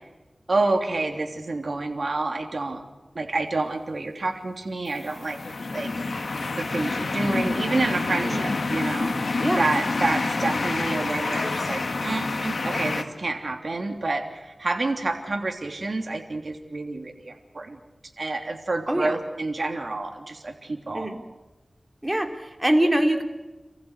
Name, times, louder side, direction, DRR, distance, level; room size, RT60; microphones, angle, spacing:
voice 1, 0.5-2.8 3.1-5.4 5.7-5.9 6.5-9.1 9.6-17.8 18.2-21.1, right 2 dB, 70° right, 4 dB, 3.2 m, -28 dB
sound 1, 5.0-13.0, left 3 dB, 80° left, 1.8 m, -27 dB
voice 2, 18.9-19.2 20.9-21.2 22.0-23.2, right 1 dB, 20° right, 5 dB, 3.2 m, -24 dB
28.0 x 15.0 x 8.3 m, 1.2 s
wide cardioid pair, 45°, 0 cm